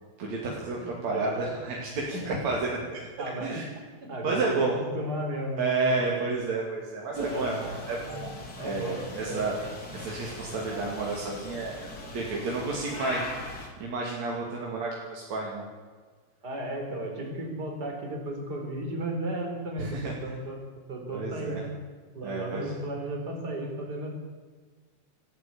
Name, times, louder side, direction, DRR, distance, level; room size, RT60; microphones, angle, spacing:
voice 1, 0.2-3.0 3.4-3.7 4.2-4.8 5.6-7.6 7.9-8.4 8.6-9.6 9.9-11.8 12.1-13.3 13.8-15.6 19.8-20.1 21.1-21.6 22.2-22.7, right 3 dB, 40° right, -3 dB, 3.2 m, -31 dB
voice 2, 0.8-1.4 2.0-2.4 3.2-3.6 4.0-6.2 7.3-7.6 8.6-9.5 16.4-20.6 20.9-21.7 22.1-24.1, right 1 dB, 20° right, 2 dB, 4.0 m, -34 dB
sound 1, 7.1-13.7, left 2 dB, 25° left, 2.2 m, -40 dB
27.5 x 11.0 x 8.6 m, 1.5 s
omnidirectional pair, 5.9 m